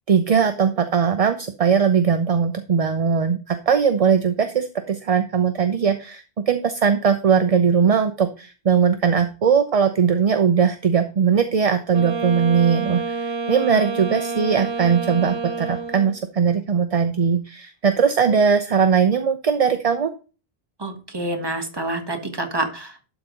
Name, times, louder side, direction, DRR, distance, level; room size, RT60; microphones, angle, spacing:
voice 1, 0.1-20.1, right 6 dB, 40° right, 8 dB, 0.6 m, -20 dB
Wind instrument woodwind instrument, 11.9-16.2, right 4 dB, 85° right, 1.2 m, -28 dB
voice 2, 20.8-23.1, right 2 dB, 25° right, 5 dB, 1.4 m, -28 dB
12.0 x 4.0 x 5.1 m, 0.34 s
omnidirectional pair, 1.0 m